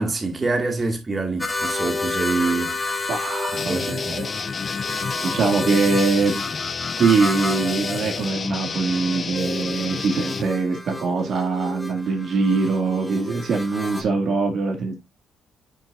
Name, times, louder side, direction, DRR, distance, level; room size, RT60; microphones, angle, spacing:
voice 1, 0.0-2.8 3.6-4.2, right 3 dB, 30° right, 2.0 m, -25 dB
sound 1, 1.4-14.0, left 3 dB, 10° left, 1.4 m, -30 dB
voice 2, 3.1-4.3 5.2-6.4 7.0-15.0, right 4 dB, 65° right, 2.2 m, -23 dB
sound 2, 3.6-10.4, left 5 dB, 40° left, 0.5 m, -31 dB
9.0 x 6.2 x 2.6 m
cardioid pair, 90°, 0 cm